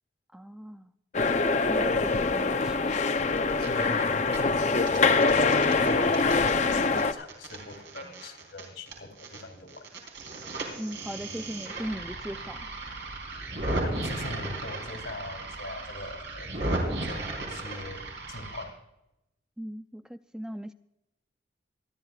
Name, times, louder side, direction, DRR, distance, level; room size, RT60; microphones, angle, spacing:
voice 1, 0.3-0.9 1.7-3.1 10.8-12.7 19.6-20.7, equal, 5° right, 10 dB, 0.3 m, -38 dB
sound 1, 1.1-7.1, left 4 dB, 40° left, 0.6 m, -24 dB
sound 2, 3.4-4.0 4.3-9.4 9.7-18.6, right 2 dB, 75° right, 4.1 m, -36 dB
voice 2, 3.6-9.8 13.6-18.8, left 2 dB, 85° left, 5 dB, 2.8 m, -40 dB
27.0 x 11.5 x 2.4 m, 0.89 s
head